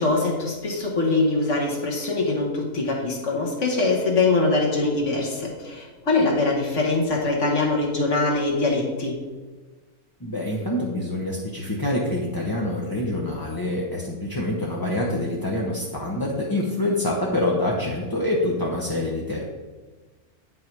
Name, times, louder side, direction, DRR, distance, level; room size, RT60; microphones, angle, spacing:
voice 1, 0.0-9.1, left 3 dB, 55° left, -1 dB, 1.6 m, -23 dB
voice 2, 10.2-19.4, left 1 dB, 20° left, -4 dB, 0.6 m, -26 dB
8.6 x 5.5 x 4.6 m, 1.3 s
omnidirectional pair, 1.6 m